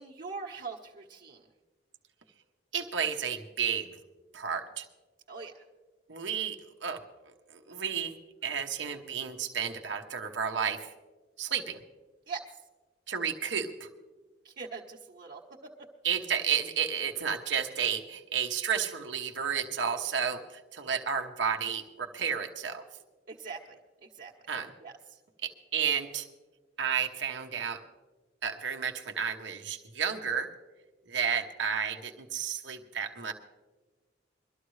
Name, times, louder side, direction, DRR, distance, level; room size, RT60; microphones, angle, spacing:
voice 1, 0.0-1.4 5.3-5.5 12.3-12.4 14.4-15.4 15.8-15.9 23.3-24.3 24.8-24.9, right 4 dB, 55° right, -5 dB, 1.2 m, -42 dB
voice 2, 2.7-3.9 4.3-4.9 6.1-7.0 7.5-10.9 11.4-11.8 13.1-13.9 16.0-22.8 24.5-24.7 25.4-26.3 26.8-27.8 28.4-30.5 31.1-33.3, right 7 dB, 80° right, 4 dB, 1.0 m, -32 dB
22.5 x 13.0 x 3.2 m, 1.3 s
head